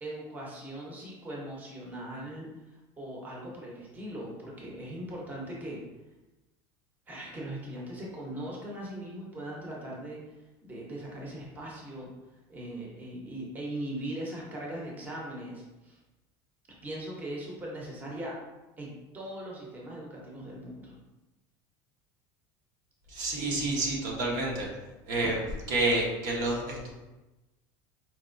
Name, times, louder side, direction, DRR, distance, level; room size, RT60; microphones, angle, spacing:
voice 1, 0.0-5.8 7.1-12.1 12.5-16.0 16.8-18.4 18.8-21.0, right 1 dB, 15° right, -3 dB, 0.7 m, -40 dB
voice 2, 23.1-24.7 25.1-26.9, right 2 dB, 80° right, -2 dB, 1.0 m, -29 dB
4.4 x 2.8 x 2.5 m, 1.1 s
cardioid pair, 160°, 11 cm